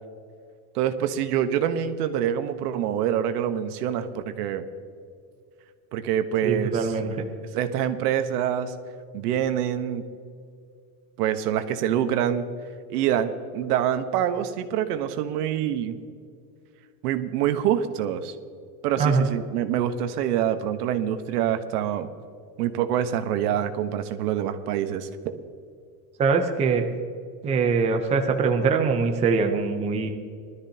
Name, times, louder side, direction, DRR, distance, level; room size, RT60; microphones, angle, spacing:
voice 1, 0.7-4.7 5.9-6.7 7.5-8.7 9.1-10.0 11.2-12.5 12.9-16.0 17.0-18.3 18.8-22.1 22.6-25.4, right 10 dB, 80° right, 9 dB, 1.2 m, -26 dB
voice 2, 6.4-7.3 19.0-19.3 26.2-26.9 27.4-30.1, right 4 dB, 15° right, 4 dB, 0.6 m, -23 dB
20.0 x 13.0 x 2.9 m, 2.3 s
supercardioid pair, 165°, 46 cm